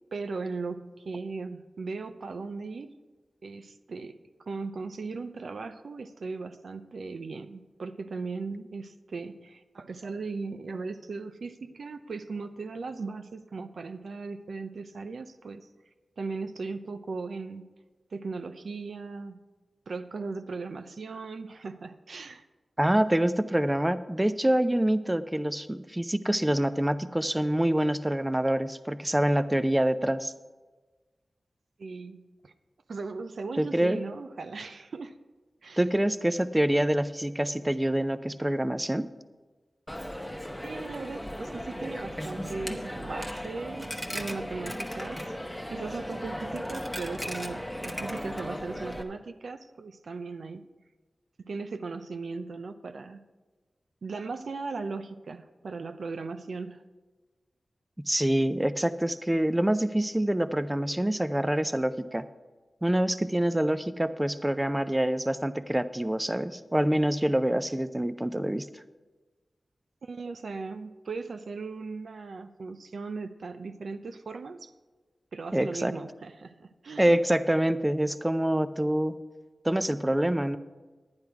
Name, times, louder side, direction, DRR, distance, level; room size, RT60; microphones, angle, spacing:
voice 1, 0.1-2.9 3.4-4.2 4.5-15.7 16.2-17.7 18.1-19.4 19.9-22.4 31.8-32.5 32.9-35.2 35.6-35.8 40.6-45.2 45.7-50.6 51.5-53.2 54.0-56.8 70.0-74.7 75.3-77.2, right 4 dB, 80° right, 9 dB, 0.5 m, -38 dB
voice 2, 22.8-30.3 33.6-34.0 35.8-39.1 58.1-62.3 62.8-68.8 75.5-75.9 77.0-79.2 79.6-80.6, right 1 dB, 15° right, 12 dB, 0.4 m, -26 dB
Coin (dropping), 39.9-49.0, equal, ahead, 1.0 m, -36 dB
10.5 x 9.7 x 4.7 m, 1.3 s
wide cardioid pair, 70°, 0 cm